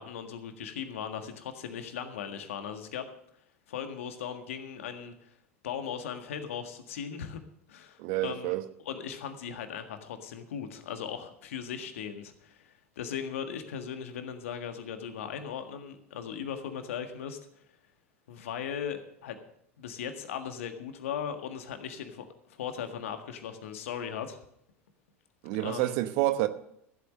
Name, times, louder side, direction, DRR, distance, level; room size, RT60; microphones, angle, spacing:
voice 1, 0.0-3.1 3.7-5.3 5.6-7.4 7.7-8.6 8.9-17.4 18.3-19.4 19.8-24.4 25.6-26.0, left 8 dB, 70° left, 1.6 m, -38 dB
voice 2, 8.0-8.6 25.4-26.5, right 15 dB, 60° right, 1.1 m, -28 dB
14.5 x 8.2 x 6.4 m
hypercardioid pair, 80°, 7 cm